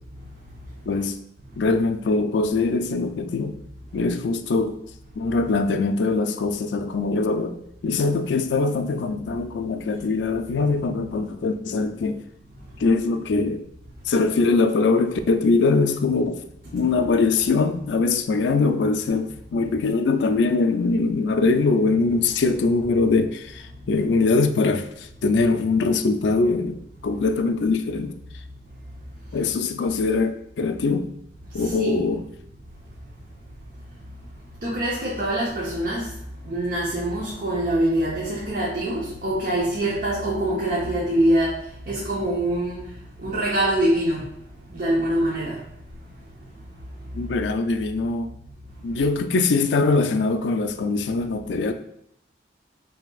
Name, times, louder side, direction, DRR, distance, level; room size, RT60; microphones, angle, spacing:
voice 1, 0.9-1.2 1.6-3.6 3.9-4.8 5.2-7.6 7.8-12.2 12.8-13.6 14.1-16.4 16.7-28.2 29.3-31.1 31.5-32.2 47.1-48.3 48.8-51.7, left 3 dB, 80° left, 8 dB, 0.4 m, -22 dB
voice 2, 31.6-32.1 34.6-36.1 36.4-41.6 41.9-42.8 43.2-44.3 44.7-45.6, right 1 dB, 50° right, -6 dB, 0.8 m, -24 dB
5.7 x 2.8 x 2.3 m, 0.76 s
head